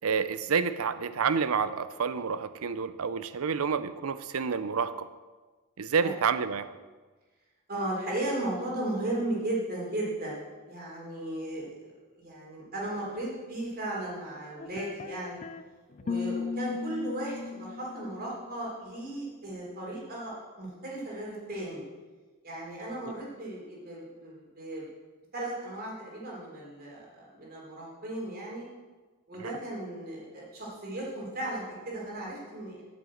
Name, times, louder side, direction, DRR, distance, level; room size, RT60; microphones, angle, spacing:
voice 1, 0.0-5.1 5.8-6.7 29.4-29.5, right 6 dB, 70° right, 13 dB, 0.5 m, -29 dB
voice 2, 7.7-11.9 12.2-15.4 16.0-21.8 22.4-24.9 25.3-28.7 29.3-32.8, right 1 dB, 45° right, -4 dB, 3.8 m, -36 dB
sound 1, 14.6-15.6 16.0-18.9, left 5 dB, 35° left, 0.4 m, -37 dB
8.6 x 7.3 x 7.8 m, 1.3 s
head